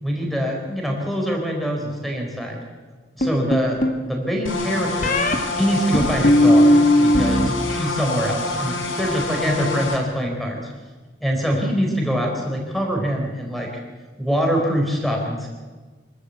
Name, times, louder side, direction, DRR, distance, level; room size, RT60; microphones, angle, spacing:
voice 1, 0.0-2.6 3.1-5.2 5.5-10.7 11.2-13.7 14.2-15.5, equal, ahead, 1 dB, 4.4 m, -24 dB
sound 1, 3.2-4.0 5.0-5.4 5.9-7.5 7.8-8.3, left 1 dB, 40° left, 2.1 m, -17 dB
sound 2, 4.5-10.0, left 3 dB, 80° left, 3.7 m, -27 dB
26.0 x 13.5 x 8.3 m, 1.3 s
head